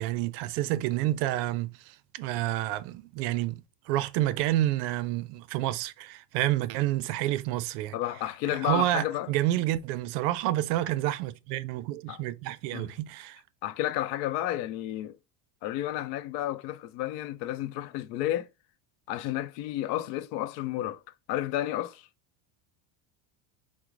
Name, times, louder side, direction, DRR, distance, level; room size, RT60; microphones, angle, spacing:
voice 1, 0.0-8.0 8.6-13.4, right 15 dB, 70° right, 0.6 m, -29 dB
voice 2, 7.9-9.3 12.1-12.2 12.7-12.9 13.6-15.2 15.6-18.5 19.1-21.0 21.3-22.1, left 13 dB, 75° left, 0.6 m, -31 dB
4.6 x 2.1 x 3.7 m
cardioid pair, 165°, 50 cm